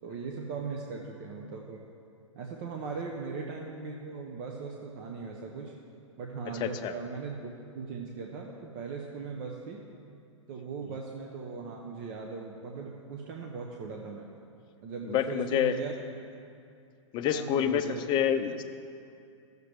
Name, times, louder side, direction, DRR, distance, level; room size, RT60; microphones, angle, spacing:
voice 1, 0.0-1.8 2.3-5.8 6.2-9.8 10.5-14.3 14.8-15.9 17.3-18.0, right 5 dB, 40° right, 0 dB, 0.9 m, -39 dB
voice 2, 6.6-6.9 15.0-15.8 17.1-18.6, left 9 dB, 30° left, 9 dB, 0.5 m, -27 dB
14.5 x 6.7 x 3.3 m, 2.4 s
hypercardioid pair, 110°, 16 cm